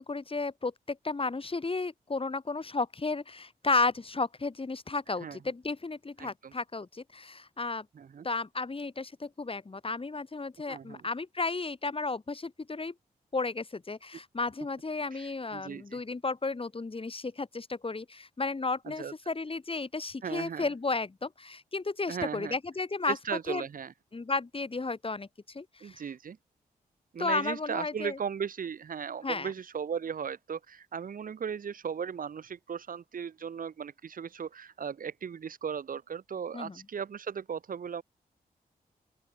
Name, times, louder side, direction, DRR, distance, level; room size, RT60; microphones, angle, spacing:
voice 1, 0.0-7.9 8.2-12.9 13.3-23.2 23.5-23.6 24.1-26.0 27.2-28.2 29.2-29.5 36.5-36.8, left 3 dB, 35° left, 3.3 m, -33 dB
voice 2, 6.2-6.5 7.9-8.2 10.7-11.1 15.1-16.0 18.8-19.1 20.2-20.7 22.1-22.6 23.1-23.9 25.8-26.4 27.1-38.0, right 7 dB, 60° right, 1.1 m, -37 dB
open air
cardioid pair, 55°, 16 cm